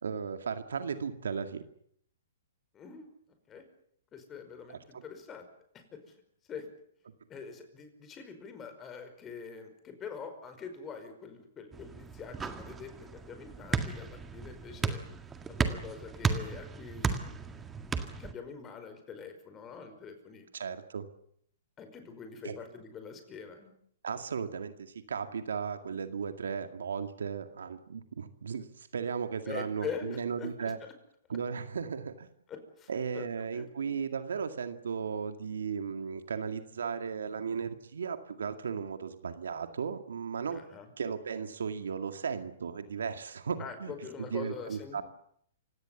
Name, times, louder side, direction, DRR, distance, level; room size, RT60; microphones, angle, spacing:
voice 1, 0.0-1.6 4.7-5.0 20.6-21.0 22.4-22.6 24.0-30.8 31.3-32.3 32.9-40.6 41.0-45.0, right 6 dB, 80° right, 8 dB, 2.1 m, -36 dB
voice 2, 2.7-3.1 3.5-3.7 4.1-5.5 5.7-6.1 6.5-6.7 7.3-15.0 15.5-20.5 21.8-23.7 29.5-30.9 32.5-33.3 33.5-33.6 40.5-40.9 43.6-45.0, left 6 dB, 20° left, 7 dB, 5.3 m, -44 dB
sound 1, 11.7-18.3, right 5 dB, 15° right, 1.9 m, -35 dB
28.5 x 17.5 x 7.2 m, 0.68 s
hypercardioid pair, 130°, 0 cm